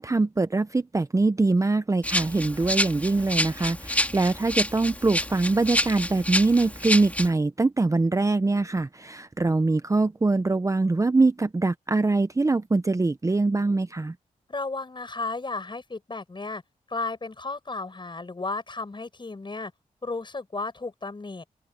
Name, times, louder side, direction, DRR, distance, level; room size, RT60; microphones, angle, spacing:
voice 1, 0.0-14.1, right 3 dB, 25° right, 0.7 m, -23 dB
Rattle (instrument), 2.0-7.3, left 1 dB, 10° left, 2.6 m, -28 dB
voice 2, 14.5-16.6 16.9-19.7 20.0-21.5, left 3 dB, 35° left, 7.3 m, -33 dB
open air
wide cardioid pair, 85°, 14 cm